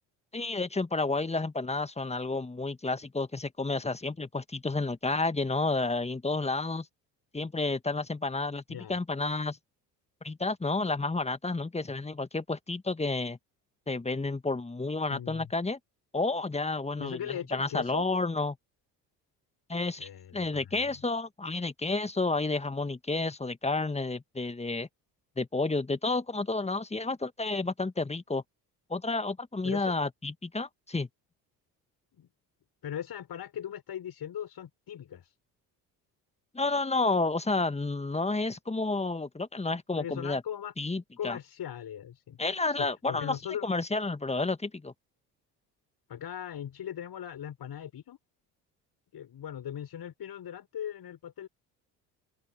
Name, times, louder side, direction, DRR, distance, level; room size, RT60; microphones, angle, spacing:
voice 1, 0.3-6.9 7.3-9.6 10.2-13.4 13.9-15.8 16.1-18.6 19.7-24.9 25.4-28.4 28.9-31.1 36.5-40.4 40.8-41.4 42.4-43.3 43.6-44.9, left 3 dB, 15° left, 1.6 m, -31 dB
voice 2, 15.1-15.5 17.0-18.1 20.0-21.0 29.6-29.9 32.1-32.3 32.8-35.3 39.9-40.7 41.2-43.7 46.1-48.2 49.1-51.5, left 10 dB, 50° left, 5.9 m, -39 dB
open air
hypercardioid pair, 55°, 49 cm